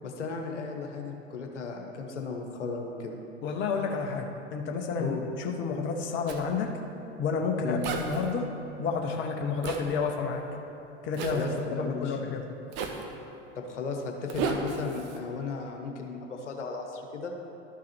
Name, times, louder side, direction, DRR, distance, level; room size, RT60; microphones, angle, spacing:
voice 1, 0.0-3.2 5.0-5.2 7.6-7.9 11.3-12.2 13.6-17.3, left 4 dB, 75° left, 2 dB, 1.1 m, -35 dB
voice 2, 3.4-6.7 7.2-8.5 8.8-10.4 11.0-12.4, left 4 dB, 30° left, 3 dB, 0.7 m, -30 dB
Zipper (clothing), 6.3-6.4 7.8-8.3 9.6-9.8 11.1-11.4 12.7-13.1 14.3-15.2, right 5 dB, 50° right, 0.9 m, -33 dB
12.0 x 4.8 x 4.4 m, 2.9 s
figure-of-eight pair, 80°, 36 cm